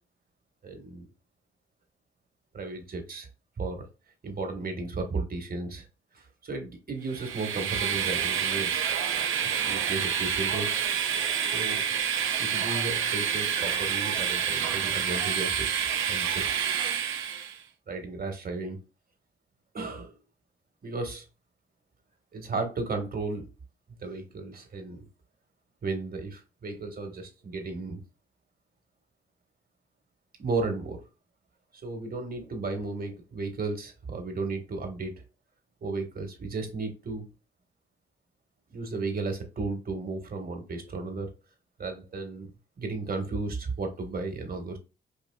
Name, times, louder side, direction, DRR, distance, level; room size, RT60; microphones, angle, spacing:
voice 1, 0.6-1.1 2.5-3.3 3.6-3.9 4.2-5.9 6.1-8.9 9.6-10.7 11.5-11.9 12.4-15.7 16.1-16.6 17.9-18.8 19.7-20.1 20.8-21.2 22.3-23.5 24.0-25.0 25.8-28.0 30.4-31.0 31.8-35.1 35.8-37.3 38.7-41.3 41.8-42.5 42.8-44.8, right 3 dB, 50° right, 5 dB, 1.4 m, -34 dB
Train, 7.1-17.6, right 8 dB, 80° right, 0.6 m, -28 dB
4.9 x 2.8 x 2.3 m, 0.30 s
supercardioid pair, 55°, 20 cm